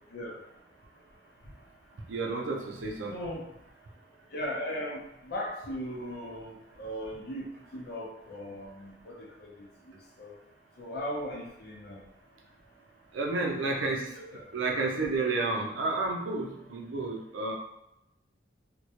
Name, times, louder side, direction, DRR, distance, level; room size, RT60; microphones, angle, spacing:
voice 1, 2.1-3.1 13.1-14.0 14.5-17.5, right 3 dB, 90° right, 0 dB, 0.5 m, -31 dB
voice 2, 3.1-3.5 4.3-10.4 10.8-12.0 13.8-14.5, equal, 55° left, -3 dB, 0.6 m, -38 dB
2.2 x 2.1 x 2.8 m, 0.84 s
head